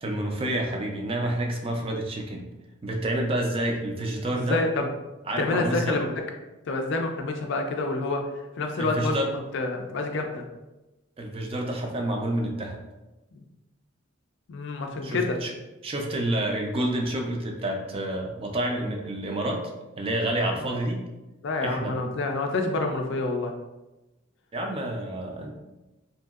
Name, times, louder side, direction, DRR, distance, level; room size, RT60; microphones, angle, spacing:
voice 1, 0.0-2.5 2.8-4.6 5.3-6.0 8.8-9.3 11.2-12.8 15.0-15.5 15.8-19.6 20.0-21.0 21.6-22.0 24.5-25.5, right 1 dB, 30° right, 2 dB, 0.4 m, -28 dB
voice 2, 4.3-4.9 5.4-6.1 6.7-8.2 8.6-9.2 9.5-10.4 13.3-13.4 14.5-15.4 20.6-20.8 21.4-23.5, left 3 dB, 65° left, 4 dB, 0.4 m, -27 dB
2.8 x 2.6 x 2.3 m, 1.0 s
head